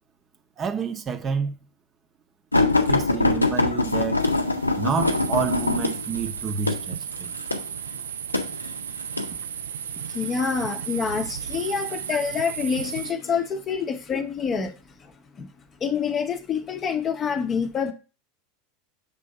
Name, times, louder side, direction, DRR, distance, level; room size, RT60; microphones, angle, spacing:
voice 1, 0.6-1.6 2.9-4.2 4.8-7.3, right 6 dB, 30° right, 0.7 m, -29 dB
sound 1, 2.5-9.3 10.1-10.5 11.5-12.1 12.9-13.0 13.4-13.5, left 2 dB, 85° left, 0.6 m, -24 dB
sound 2, 4.2-13.1, right 8 dB, 70° right, 0.3 m, -35 dB
voice 2, 10.1-15.5 15.8-17.9, left 6 dB, 30° left, 0.7 m, -27 dB
6.7 x 2.7 x 5.3 m
figure-of-eight pair, 80°, 0 cm